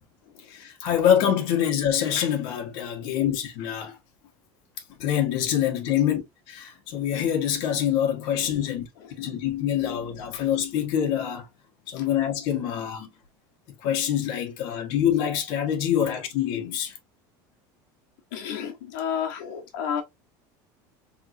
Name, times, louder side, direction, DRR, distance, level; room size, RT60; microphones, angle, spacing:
voice 1, 0.5-4.0 5.0-6.2 6.5-8.8 9.2-11.4 11.9-13.1 13.8-16.9, left 10 dB, 55° left, 1.5 m, -25 dB
voice 2, 8.4-8.7 9.0-9.3 11.9-12.1 14.7-14.8 18.3-20.0, left 8 dB, 85° left, 1.4 m, -33 dB
4.6 x 3.6 x 2.6 m
cardioid pair, 170°, 10 cm